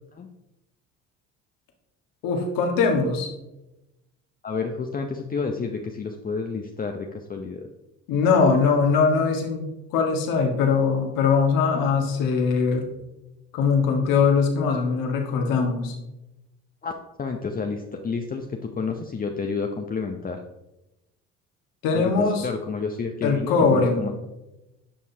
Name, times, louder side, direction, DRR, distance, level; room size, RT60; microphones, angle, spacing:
voice 1, 2.2-3.3 8.1-12.9 13.5-15.9 21.8-22.5 23.2-24.0, left 5 dB, 70° left, 2 dB, 1.7 m, -21 dB
voice 2, 4.4-7.7 16.8-16.9 17.2-20.4 21.9-24.1, left 4 dB, 25° left, 3 dB, 0.7 m, -30 dB
11.0 x 5.5 x 2.8 m, 0.95 s
hypercardioid pair, 65°, 35 cm